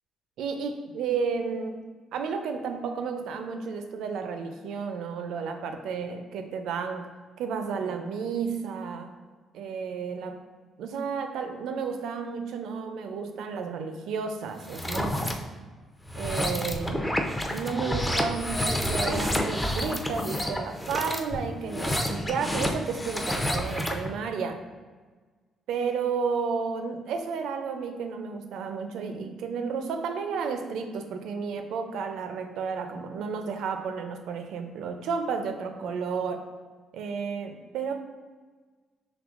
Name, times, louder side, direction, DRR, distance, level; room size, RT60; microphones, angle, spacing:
voice 1, 0.4-1.8 2.1-7.1 7.4-9.1 9.5-10.4 10.8-15.4 16.1-17.1 17.5-24.6 25.7-36.5 36.9-38.0, right 5 dB, 85° right, 6 dB, 0.4 m, -32 dB
sound 1, 14.6-15.3 16.0-24.1, left 1 dB, 10° left, 0.5 m, -29 dB
5.2 x 3.2 x 2.4 m, 1.4 s
cardioid pair, 90°, 0 cm